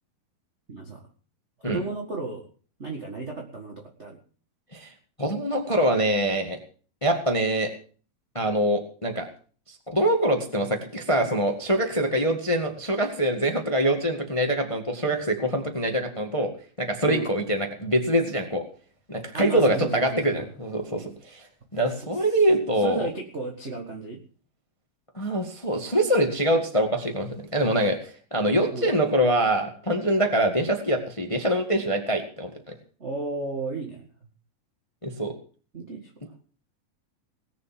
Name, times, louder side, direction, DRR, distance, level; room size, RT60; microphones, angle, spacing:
voice 1, 0.7-1.0 1.6-2.4 2.8-4.2 17.0-17.3 19.3-20.5 20.9-21.1 22.8-24.2 28.7-28.9 33.0-34.0 35.7-36.1, right 3 dB, 30° right, 1 dB, 1.2 m, -34 dB
voice 2, 5.2-6.6 7.0-7.7 8.3-9.3 9.7-16.5 16.8-18.6 19.1-21.5 21.7-23.0 25.1-32.5 35.0-35.3, right 1 dB, 50° left, 5 dB, 0.3 m, -24 dB
19.0 x 7.3 x 7.7 m, 0.42 s
omnidirectional pair, 4.3 m